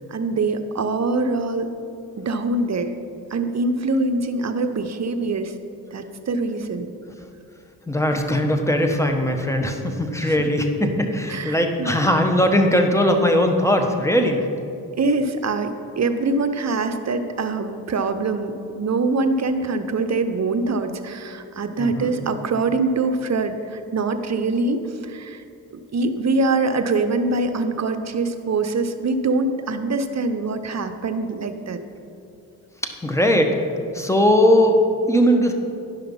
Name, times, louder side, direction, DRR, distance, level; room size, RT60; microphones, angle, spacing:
voice 1, 0.1-1.7 2.2-2.9 3.3-5.5 5.9-6.9 10.2-10.3 11.3-12.0 15.0-25.4 25.9-31.8, right 3 dB, 40° right, 9 dB, 0.9 m, -24 dB
voice 2, 7.9-14.4 21.8-22.1 32.8-33.6 33.9-35.5, equal, 5° left, 4 dB, 1.3 m, -19 dB
11.5 x 5.7 x 5.5 m, 2.6 s
supercardioid pair, 50°, 40 cm